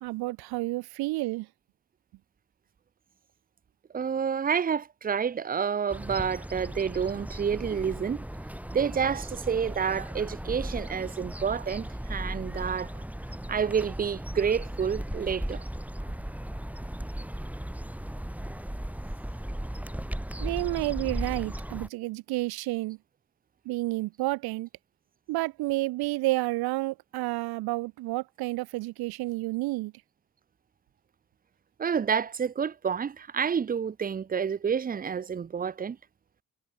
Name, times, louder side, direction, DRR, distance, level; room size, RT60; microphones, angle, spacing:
voice 1, 0.0-1.5 20.4-23.0 23.7-24.7 25.3-29.9, right 20 dB, 75° right, 0.5 m, -30 dB
voice 2, 3.9-8.2 8.7-12.9 13.5-15.6 31.8-36.0, right 7 dB, 25° right, 0.5 m, -29 dB
sound 1, 5.9-21.9, right 1 dB, 5° right, 1.5 m, -36 dB
hypercardioid pair, 40°, 38 cm